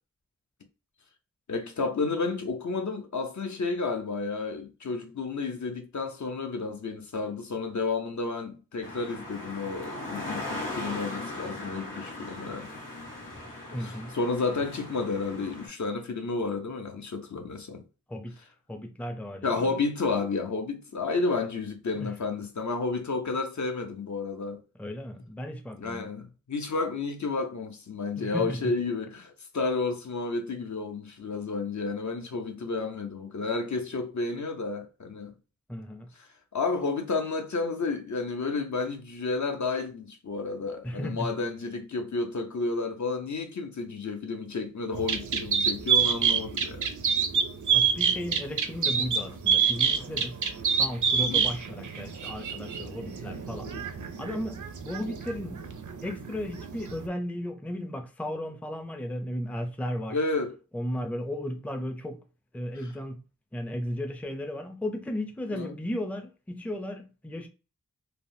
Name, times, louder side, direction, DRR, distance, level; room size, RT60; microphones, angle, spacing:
voice 1, 1.5-12.7 13.8-17.8 19.4-24.6 25.8-35.4 36.2-46.9 51.2-51.5 53.6-53.8 60.1-60.6 62.8-62.9 65.5-65.7, left 3 dB, 60° left, 0.6 m, -31 dB
sound 1, 8.8-15.7, left 1 dB, 80° left, 1.4 m, -38 dB
voice 2, 13.7-14.1 18.1-19.7 22.0-22.1 24.7-26.1 28.2-28.7 35.7-36.1 40.8-41.3 47.7-50.3 50.8-53.7 54.2-55.6 56.0-60.2 60.7-62.2 62.5-63.2 63.5-67.5, left 1 dB, 5° left, 0.4 m, -35 dB
sound 2, 44.9-57.1, right 7 dB, 65° right, 0.5 m, -28 dB
3.3 x 2.0 x 2.6 m
wide cardioid pair, 50°, 32 cm